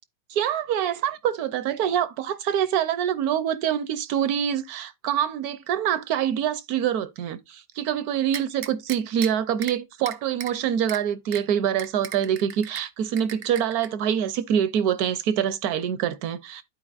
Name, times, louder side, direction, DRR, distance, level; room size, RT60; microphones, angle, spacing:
voice 1, 0.3-16.6, right 9 dB, 70° right, 0.9 m, -25 dB
sound 1, 8.3-9.3 9.6-9.7 10.1-10.5 10.9-11.0 11.3-11.4 11.8-12.8 13.2-13.9, right 8 dB, 90° right, 0.6 m, -36 dB
12.0 x 4.4 x 2.4 m
omnidirectional pair, 2.0 m